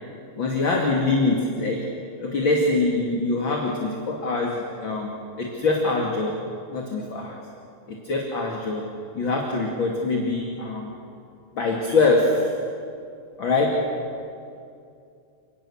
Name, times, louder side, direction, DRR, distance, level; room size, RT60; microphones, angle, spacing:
voice 1, 0.4-1.9 2.2-6.4 6.7-7.4 7.9-8.9 9.1-11.0 11.5-12.5 13.4-14.0, left 3 dB, 35° left, -1 dB, 2.7 m, -24 dB
29.5 x 20.0 x 7.2 m, 2.4 s
omnidirectional pair, 4.1 m